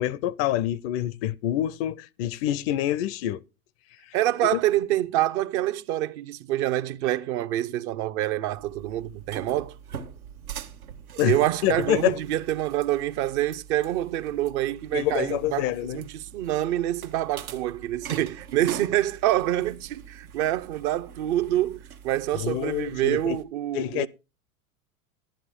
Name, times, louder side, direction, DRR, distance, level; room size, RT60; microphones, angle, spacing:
voice 1, 0.0-3.4 4.5-4.6 11.2-12.2 14.9-16.0 22.3-23.4 23.7-24.1, left 13 dB, 45° left, 0.5 m, -26 dB
voice 2, 4.1-9.8 11.2-24.1, right 13 dB, 50° right, 0.7 m, -26 dB
sound 1, 8.5-23.4, right 8 dB, 85° right, 1.0 m, -43 dB
11.0 x 10.0 x 3.6 m
hypercardioid pair, 95°, 42 cm